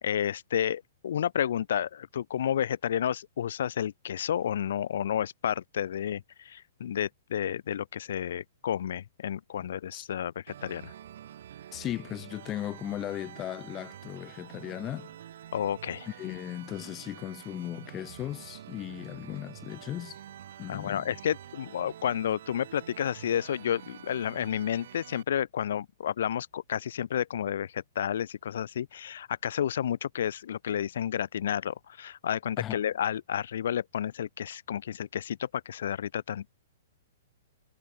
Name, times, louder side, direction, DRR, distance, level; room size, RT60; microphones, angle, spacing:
voice 1, 0.0-10.3 10.6-10.9 15.5-16.1 20.7-36.5, left 9 dB, 55° left, 1.0 m, -31 dB
sound 1, 10.5-25.2, right 10 dB, 50° right, 0.9 m, -47 dB
voice 2, 11.7-15.1 16.1-20.2 20.6-21.1 32.6-32.8, left 13 dB, 15° left, 0.3 m, -37 dB
hypercardioid pair, 180°, 0 cm